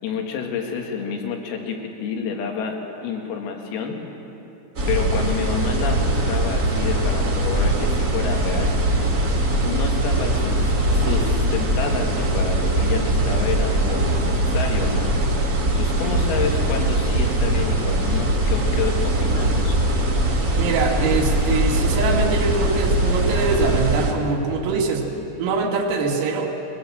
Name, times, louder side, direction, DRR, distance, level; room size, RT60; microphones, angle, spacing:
voice 1, 0.0-4.0 4.9-8.7 9.6-15.1 15.7-19.8, left 6 dB, 85° left, 2 dB, 4.9 m, -29 dB
sound 1, 4.7-24.1, right 1 dB, 55° right, 1.0 m, -21 dB
voice 2, 20.6-25.0 25.4-26.5, right 4 dB, 85° right, 1 dB, 4.9 m, -23 dB
22.5 x 21.0 x 7.6 m, 3.0 s
omnidirectional pair, 5.9 m